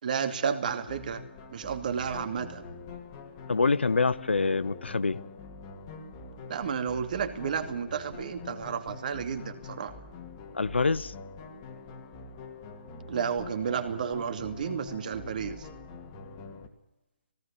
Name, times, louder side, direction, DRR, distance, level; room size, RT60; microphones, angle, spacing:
voice 1, 0.0-1.2 1.5-2.6 6.5-9.9 13.1-15.6, right 7 dB, 45° right, 2.6 m, -32 dB
sound 1, 0.6-16.7, left 4 dB, 25° left, 2.5 m, -45 dB
voice 2, 3.5-5.2 10.5-11.1, left 4 dB, 80° left, 0.9 m, -25 dB
19.0 x 18.0 x 8.7 m
figure-of-eight pair, 150°, 6 cm